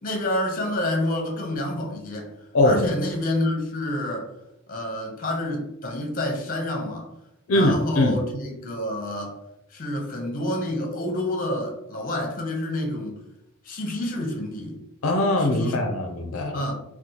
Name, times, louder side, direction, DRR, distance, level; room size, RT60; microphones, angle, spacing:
voice 1, 0.0-2.3 2.6-4.3 4.7-7.1 7.5-9.4 9.7-13.2 13.6-14.8 15.4-15.9 16.5-16.8, left 1 dB, 40° left, 2 dB, 0.7 m, -28 dB
voice 2, 7.5-8.2 15.0-16.6, left 1 dB, 80° left, 3 dB, 0.5 m, -21 dB
2.9 x 2.3 x 3.8 m, 0.85 s
head